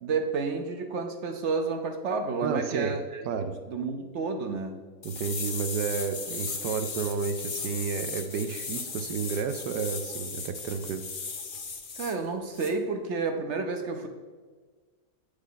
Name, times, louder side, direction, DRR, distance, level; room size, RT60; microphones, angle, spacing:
voice 1, 0.0-4.8 12.0-14.1, right 4 dB, 60° right, 6 dB, 0.8 m, -31 dB
voice 2, 2.4-3.0 3.3-3.5 5.0-11.0, right 6 dB, 80° right, 8 dB, 1.2 m, -31 dB
sound 1, 5.0-12.1 12.5-12.7, left 5 dB, 45° left, 0.6 m, -36 dB
8.2 x 6.5 x 3.9 m, 1.5 s
omnidirectional pair, 1.8 m